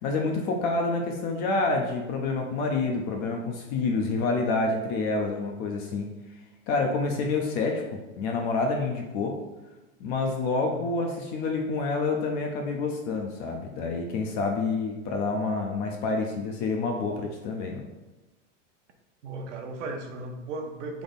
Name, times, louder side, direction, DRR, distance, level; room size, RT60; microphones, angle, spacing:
voice 1, 0.0-6.1 6.7-9.4 10.0-17.9, left 3 dB, 30° left, 2 dB, 0.4 m, -28 dB
voice 2, 19.2-21.0, right 2 dB, 70° right, 4 dB, 0.9 m, -36 dB
3.5 x 3.4 x 4.0 m, 1.1 s
supercardioid pair, 145°, 37 cm